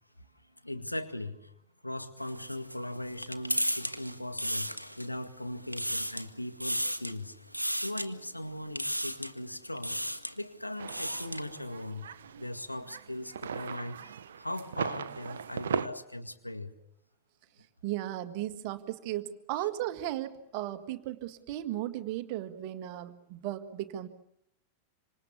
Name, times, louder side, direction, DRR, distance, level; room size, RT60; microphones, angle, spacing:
voice 1, 0.6-1.4 1.8-4.7 5.0-7.3 7.8-10.0 10.4-12.1 12.4-16.7, left 1 dB, 85° left, 1.9 m, -39 dB
sound 1, 2.2-5.2 5.6-6.3 6.6-7.2 7.5-8.1 8.7-9.4 9.8-10.3 10.7-11.5, equal, 90° right, 1.3 m, -34 dB
sound 2, 10.8-15.9, right 8 dB, 65° right, 1.0 m, -38 dB
voice 2, 17.8-24.1, right 13 dB, 45° right, 1.8 m, -36 dB
26.5 x 26.5 x 7.1 m
figure-of-eight pair, 90°, 0 cm